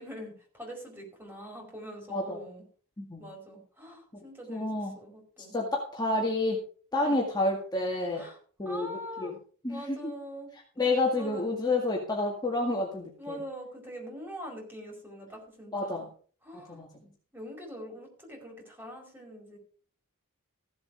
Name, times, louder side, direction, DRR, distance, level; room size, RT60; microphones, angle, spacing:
voice 1, 0.0-2.6 3.2-5.6 7.0-7.2 8.1-8.4 8.6-9.3 9.7-10.5 11.1-11.5 13.2-16.1 16.4-16.8 17.3-19.6, equal, 10° right, 0 dB, 4.9 m, -43 dB
voice 2, 4.5-4.9 5.5-6.6 6.9-8.3 8.6-9.3 9.6-10.1 10.8-13.4 15.7-16.0 16.5-16.9, left 2 dB, 20° left, -2 dB, 2.0 m, -29 dB
15.5 x 7.8 x 5.0 m, 0.43 s
head